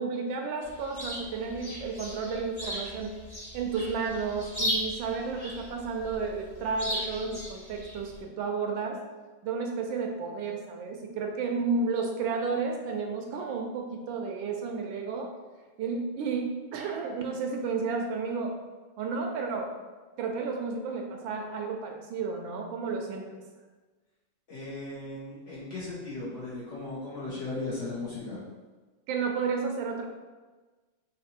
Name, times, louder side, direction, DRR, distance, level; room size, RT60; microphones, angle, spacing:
voice 1, 0.0-3.2 3.5-9.0 9.4-15.3 15.8-18.6 19.0-19.7 20.2-23.4 29.1-30.0, right 4 dB, 75° right, 2 dB, 1.3 m, -32 dB
Chirp tweet, 0.6-8.2, equal, 20° left, 0.6 m, -37 dB
voice 2, 24.5-28.4, left 2 dB, 45° left, -8 dB, 1.2 m, -37 dB
3.9 x 2.6 x 4.3 m, 1.3 s
omnidirectional pair, 2.2 m